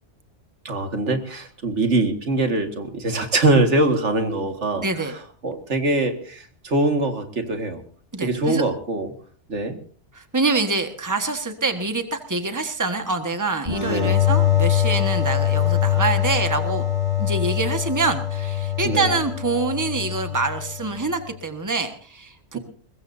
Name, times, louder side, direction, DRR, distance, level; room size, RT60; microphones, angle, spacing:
voice 1, 0.7-4.9 5.4-7.8 8.2-9.1 9.5-9.8 13.9-14.2 18.8-19.2 22.5-22.6, right 2 dB, 80° right, 5 dB, 2.2 m, -23 dB
voice 2, 4.8-5.2 8.1-8.6 10.1-16.8 17.2-22.6, right 3 dB, 15° right, 6 dB, 1.5 m, -25 dB
sound 1, 13.7-21.1, left 10 dB, 40° right, 6.8 m, -23 dB
23.0 x 20.5 x 2.7 m, 0.44 s
omnidirectional pair, 1.2 m